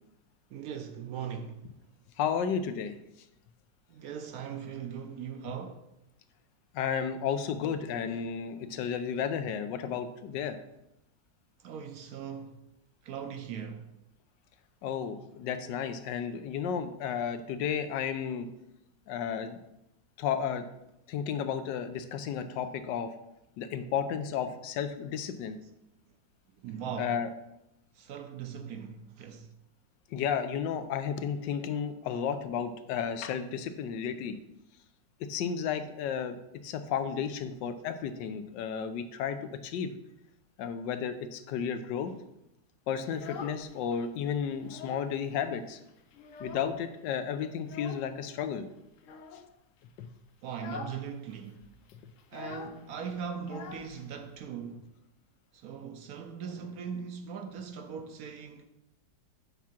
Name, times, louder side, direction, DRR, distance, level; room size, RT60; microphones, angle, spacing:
voice 1, 0.5-1.8 3.9-5.9 9.9-10.0 10.3-10.4 11.6-12.7 13.0-13.9 26.1-26.2 26.6-27.3 27.9-29.5 42.1-42.2 50.4-51.7 52.3-55.0 55.5-58.7, right 7 dB, 70° right, 0.9 m, -40 dB
voice 2, 2.2-2.9 6.7-10.6 14.8-18.5 19.1-19.6 20.2-20.6 21.1-23.1 23.6-25.6 27.0-27.3 30.1-34.4 35.3-36.4 36.6-39.9 40.6-42.1 42.9-45.8 46.4-48.7 50.0-50.1, left 7 dB, 85° left, 1.3 m, -33 dB
Child speech kid speaking, 43.0-44.0 44.4-45.2 45.4-45.5 45.9-47.0 47.6-48.1 49.0-49.5 49.9-50.1 50.5-51.0 51.3-51.4 51.6-54.4, left 6 dB, 65° left, 0.8 m, -45 dB
7.5 x 3.6 x 5.8 m
omnidirectional pair, 1.9 m